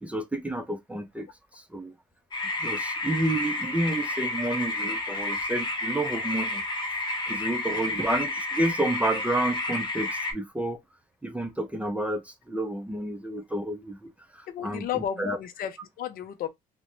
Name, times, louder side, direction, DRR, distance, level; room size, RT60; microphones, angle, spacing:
voice 1, 0.0-1.3 1.5-1.9 2.6-6.6 7.3-10.8 11.2-15.4, right 1 dB, 10° right, 0.4 m, -30 dB
sound 1, 2.3-10.3, left 2 dB, 25° left, 0.7 m, -30 dB
voice 2, 14.5-16.5, left 10 dB, 60° left, 0.5 m, -33 dB
2.4 x 2.1 x 2.9 m
cardioid pair, 110°, 17 cm